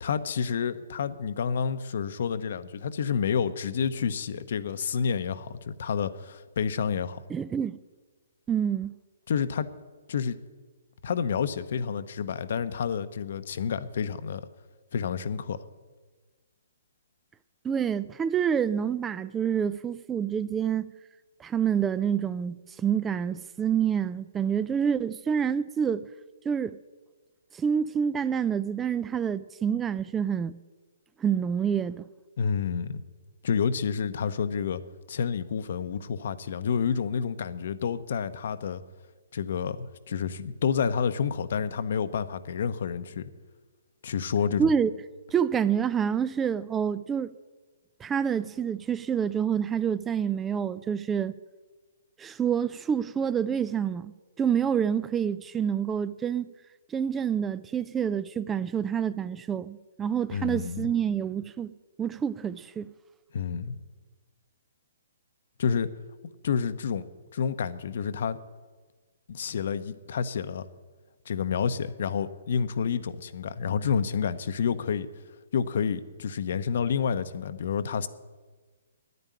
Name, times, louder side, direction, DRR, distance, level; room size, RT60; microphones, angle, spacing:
voice 1, 0.0-7.2 9.3-9.7 10.1-10.4 11.0-14.5 14.9-15.6 32.4-33.0 33.4-34.8 35.1-38.8 39.3-43.2 44.0-44.7 60.3-60.9 63.3-63.7 65.6-65.9 66.4-67.0 67.3-68.4 69.3-70.6 71.3-75.1 75.5-78.1, left 6 dB, 60° left, 0.8 m, -29 dB
voice 2, 7.3-7.8 8.5-8.9 17.6-20.9 21.4-26.0 26.4-26.8 27.5-30.6 31.2-32.0 44.6-44.9 45.3-47.3 48.0-51.3 52.2-54.1 54.4-56.5 56.9-61.7 62.0-62.9, right 8 dB, 15° right, 0.3 m, -27 dB
10.0 x 9.4 x 10.0 m
hypercardioid pair, 135°, 0 cm